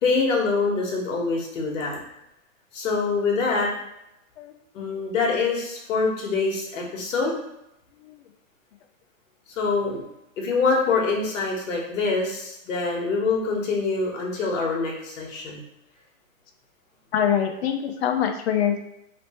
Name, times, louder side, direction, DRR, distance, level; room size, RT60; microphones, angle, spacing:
voice 1, 0.0-2.0 2.7-3.7 4.7-7.3 9.6-10.0 10.4-15.6, left 4 dB, 70° left, -1 dB, 1.3 m, -25 dB
voice 2, 17.1-18.8, left 9 dB, 50° left, 5 dB, 0.5 m, -24 dB
3.1 x 3.0 x 2.9 m, 0.85 s
hypercardioid pair, 150°, 40 cm